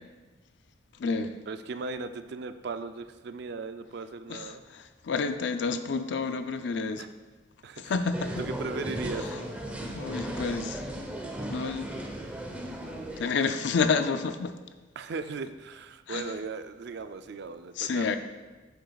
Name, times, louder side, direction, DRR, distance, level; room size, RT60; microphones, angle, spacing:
voice 1, 0.9-1.4 4.3-7.1 7.8-8.4 9.2-9.4 9.8-10.8 11.5-12.0 13.2-14.6 16.1-16.2 17.8-18.2, left 4 dB, 65° left, 9 dB, 0.5 m, -30 dB
voice 2, 1.5-4.6 7.0-7.1 7.6-7.9 8.4-9.4 15.0-18.2, right 4 dB, 60° right, 10 dB, 0.4 m, -37 dB
sound 1, 8.1-13.3, right 1 dB, 10° right, 0.7 m, -36 dB
8.7 x 7.9 x 2.3 m, 1.2 s
head